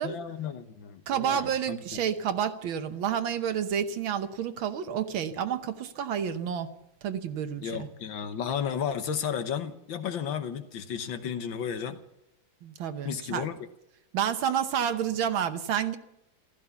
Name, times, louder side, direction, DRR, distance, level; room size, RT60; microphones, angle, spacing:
voice 1, 0.0-1.8 7.6-12.0 13.0-13.5, left 8 dB, 70° left, 9 dB, 1.8 m, -33 dB
voice 2, 1.1-6.7 7.0-7.9 12.6-13.5 14.1-16.0, right 8 dB, 80° right, 9 dB, 1.8 m, -29 dB
14.5 x 14.0 x 7.0 m, 0.82 s
omnidirectional pair, 2.2 m